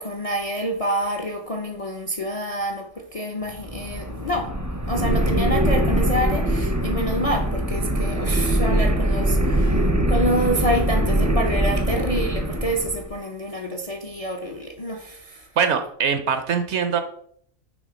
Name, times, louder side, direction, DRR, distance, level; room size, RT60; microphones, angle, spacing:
voice 1, 0.0-4.5 4.9-15.5, equal, 40° left, 3 dB, 0.5 m, -27 dB
sound 1, 3.5-13.1, right 1 dB, 20° right, 0.5 m, -22 dB
voice 2, 15.6-17.0, right 7 dB, 65° right, 8 dB, 0.8 m, -22 dB
6.3 x 3.2 x 5.0 m, 0.64 s
omnidirectional pair, 1.4 m